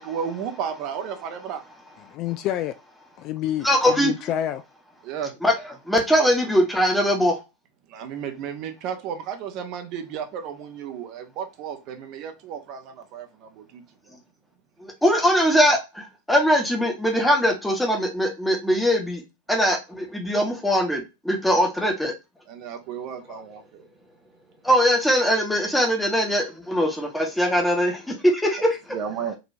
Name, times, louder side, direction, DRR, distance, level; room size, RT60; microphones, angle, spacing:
voice 1, 0.0-1.6 5.0-5.3 7.9-14.2 22.5-23.9 28.9-29.4, right 7 dB, 40° right, 0.7 m, -33 dB
voice 2, 2.1-2.7 3.2-4.6 23.3-23.4, left 11 dB, 40° left, 0.3 m, -28 dB
voice 3, 3.6-4.1 5.4-5.5 5.9-7.4 14.8-19.2 19.5-22.1 24.6-28.8, equal, 5° left, 1.0 m, -21 dB
4.0 x 2.8 x 2.7 m
figure-of-eight pair, 90°, 0 cm